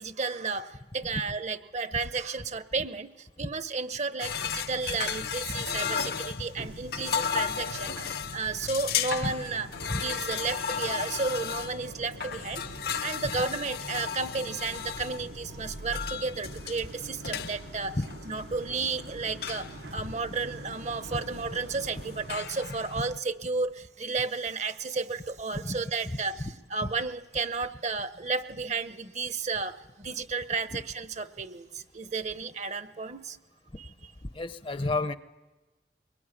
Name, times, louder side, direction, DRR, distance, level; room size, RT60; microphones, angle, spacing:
voice 1, 0.0-3.1 3.4-8.0 8.3-9.7 10.0-12.6 13.0-18.0 18.2-29.7 30.0-33.4 33.8-33.9, right 4 dB, 40° right, 12 dB, 0.9 m, -33 dB
sound 1, 4.2-23.2, left 7 dB, 60° left, 0.9 m, -35 dB
sound 2, 6.6-22.3, right 2 dB, 70° right, 1.0 m, -46 dB
voice 2, 34.3-35.2, left 2 dB, 30° left, 12 dB, 0.8 m, -30 dB
23.0 x 22.0 x 10.0 m, 1.2 s
head